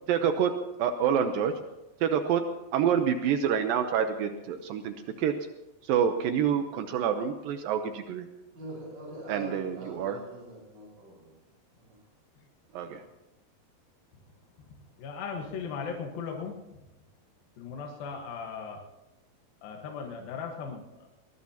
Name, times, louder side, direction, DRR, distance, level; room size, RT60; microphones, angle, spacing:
voice 1, 0.1-0.5 0.8-1.5 2.0-2.4 2.7-5.3 5.8-8.3 9.3-10.2 12.7-13.0, right 8 dB, 80° right, 7 dB, 2.4 m, -27 dB
voice 2, 8.5-11.3 11.8-12.0, right 2 dB, 30° right, -4 dB, 5.5 m, -43 dB
voice 3, 15.0-16.6 17.6-18.8 19.6-21.1, left 5 dB, 75° left, 2 dB, 3.2 m, -37 dB
22.5 x 20.0 x 2.9 m, 0.95 s
omnidirectional pair, 4.3 m